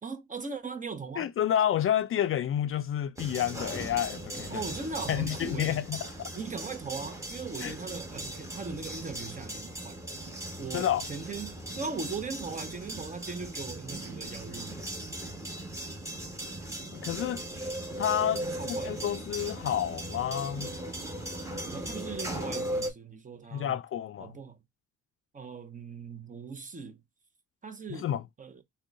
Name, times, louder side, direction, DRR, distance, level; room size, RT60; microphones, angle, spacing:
voice 1, 0.0-1.3 4.5-5.8 6.3-10.0 10.6-14.9 18.5-19.1 21.7-23.7 24.2-24.6 25.3-27.0 27.6-28.1 28.4-28.6, right 4 dB, 25° right, 0.7 m, -39 dB
voice 2, 1.2-4.6 5.1-6.0 7.6-7.7 10.7-11.0 16.9-17.4 18.0-20.7 23.5-24.3 28.0-28.2, left 10 dB, 45° left, 0.4 m, -29 dB
sound 1, 3.2-22.9, right 1 dB, 10° right, 1.3 m, -38 dB
3.6 x 2.3 x 3.6 m
cardioid pair, 90°, 30 cm